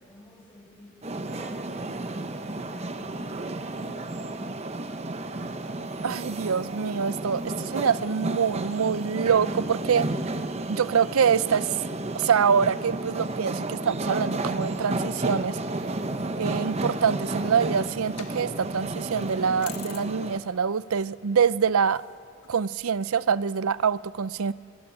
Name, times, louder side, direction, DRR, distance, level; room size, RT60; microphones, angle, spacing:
voice 1, 0.0-4.4, equal, 20° left, 6.0 m, -49 dB
sound 1, 1.0-20.4, right 2 dB, 30° right, 0.8 m, -32 dB
voice 2, 6.0-10.1 10.7-11.8 12.1-15.6 16.4-22.0 22.5-24.5, right 6 dB, 85° right, 0.5 m, -25 dB
sound 2, 17.0-23.2, left 7 dB, 90° left, 1.5 m, -49 dB
22.5 x 14.5 x 8.9 m
head